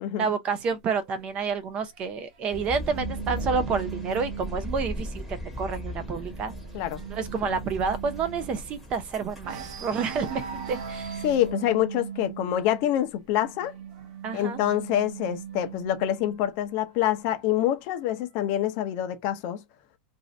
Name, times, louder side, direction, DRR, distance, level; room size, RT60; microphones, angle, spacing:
voice 1, 0.2-5.2 5.6-6.5 7.1-11.2 14.2-14.6, right 5 dB, 25° right, 0.5 m, -29 dB
sound 1, 0.6-4.2 4.6-5.0 5.2-5.3 5.7-9.0 9.4-15.9 16.8-17.8, right 5 dB, 55° right, 0.9 m, -44 dB
sound 2, 2.5-11.5, equal, ahead, 1.0 m, -38 dB
sound 3, 2.9-5.1 5.7-8.9 10.0-13.0 13.4-16.4, right 8 dB, 85° right, 0.7 m, -40 dB
voice 2, 11.2-13.7 14.3-19.6, left 11 dB, 45° left, 0.6 m, -26 dB
2.6 x 2.4 x 3.1 m
supercardioid pair, 160°, 4 cm